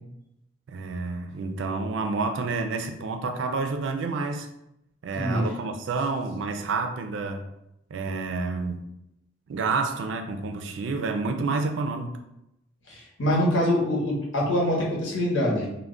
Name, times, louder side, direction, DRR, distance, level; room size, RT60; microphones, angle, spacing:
voice 1, 0.7-4.5 5.0-7.5 7.9-8.8 9.5-12.2, right 3 dB, 70° right, 6 dB, 0.3 m, -29 dB
voice 2, 12.9-15.7, left 1 dB, 75° left, -4 dB, 0.9 m, -24 dB
2.3 x 2.1 x 3.6 m, 0.85 s
head